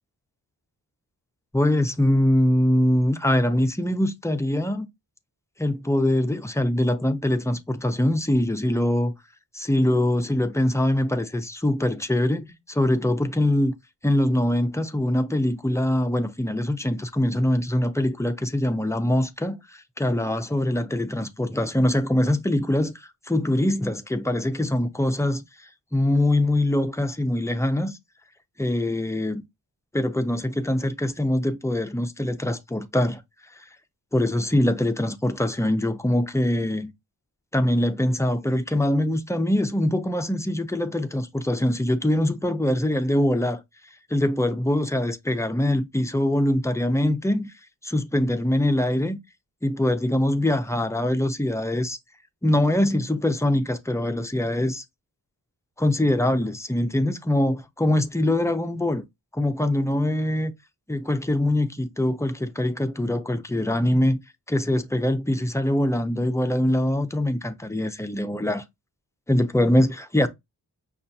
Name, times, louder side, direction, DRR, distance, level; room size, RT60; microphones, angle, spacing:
voice 1, 1.5-4.9 5.6-9.1 9.5-13.7 14.0-28.0 28.6-29.4 29.9-33.2 33.6-33.7 34.1-36.9 37.5-43.6 44.1-47.5 47.8-49.2 49.6-52.0 52.4-54.8 55.8-59.0 59.3-60.5 60.9-64.2 64.5-68.6 69.3-70.3, left 1 dB, 10° left, 0.4 m, -23 dB
5.4 x 2.4 x 2.6 m
wide cardioid pair, 100°, 39 cm